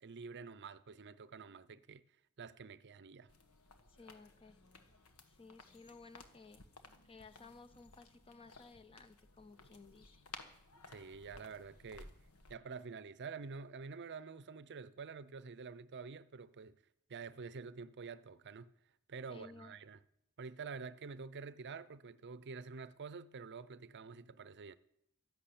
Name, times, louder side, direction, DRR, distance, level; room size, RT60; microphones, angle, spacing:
voice 1, 0.0-2.0 2.4-3.3 10.9-12.1 12.5-16.8 17.1-18.7 19.1-20.0 20.4-24.8, right 5 dB, 50° right, 0.6 m, -48 dB
sound 1, 3.3-12.5, left 3 dB, 80° left, 1.6 m, -58 dB
voice 2, 3.9-4.6 5.3-6.6 7.0-10.2 19.3-19.8, left 3 dB, 25° left, 0.7 m, -57 dB
12.5 x 11.5 x 8.6 m
head